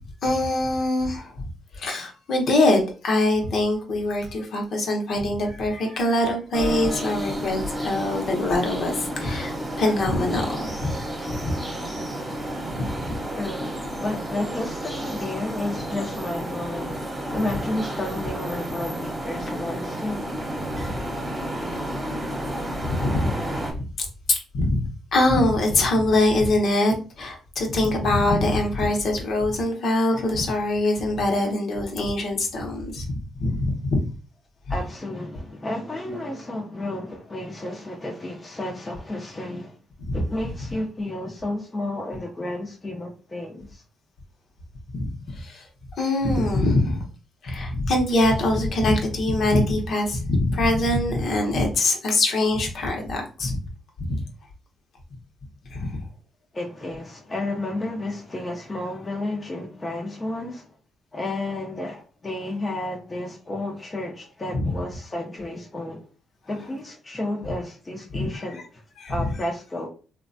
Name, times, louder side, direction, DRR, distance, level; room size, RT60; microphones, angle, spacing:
voice 1, 0.2-1.5 1.7-11.5 12.7-12.9 20.8-21.0 22.8-23.3 24.0-24.9 25.1-34.0 40.1-40.2 44.9-45.6 46.0-47.0 47.4-53.6 54.1-54.2 55.7-56.0 64.5-64.7 68.1-68.2 69.0-69.1, left 2 dB, 60° left, 0.8 m, -23 dB
sound 1, 6.5-23.7, right 1 dB, 25° right, 0.9 m, -31 dB
voice 2, 13.3-17.0 17.3-20.2 34.7-39.8 40.1-43.8 56.5-60.7 61.1-66.1 66.5-68.8 69.1-69.9, left 1 dB, 25° left, 0.6 m, -32 dB
3.1 x 2.1 x 2.6 m
cardioid pair, 90°, 0 cm